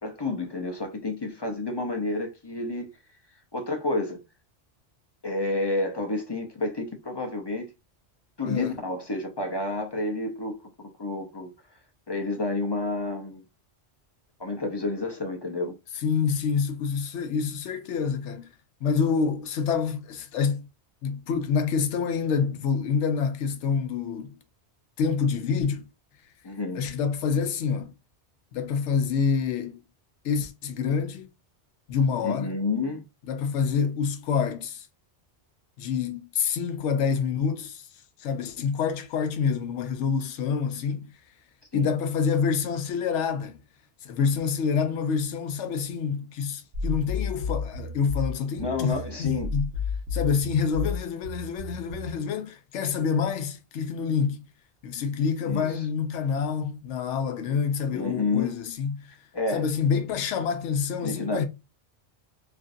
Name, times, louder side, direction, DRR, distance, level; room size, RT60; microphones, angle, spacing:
voice 1, 0.0-2.9 3.5-4.2 5.2-7.7 8.4-11.5 12.1-13.4 14.4-15.8 26.4-26.8 32.2-33.0 41.7-41.9 48.6-49.5 55.5-55.7 57.9-58.5 59.3-59.6 61.0-61.4, left 2 dB, 35° left, 0.4 m, -30 dB
voice 2, 16.0-18.5 18.8-20.6 21.0-24.4 25.0-25.9 26.7-27.9 28.5-29.8 30.2-31.3 31.9-32.5 33.3-34.9 35.8-37.9 38.2-41.1 41.7-43.6 44.0-49.7 50.1-54.5 54.8-59.2 59.5-61.4, left 6 dB, 85° left, 0.9 m, -27 dB
sound 1, 46.7-52.2, left 4 dB, 85° right, 1.2 m, -32 dB
3.1 x 2.5 x 2.5 m
omnidirectional pair, 1.2 m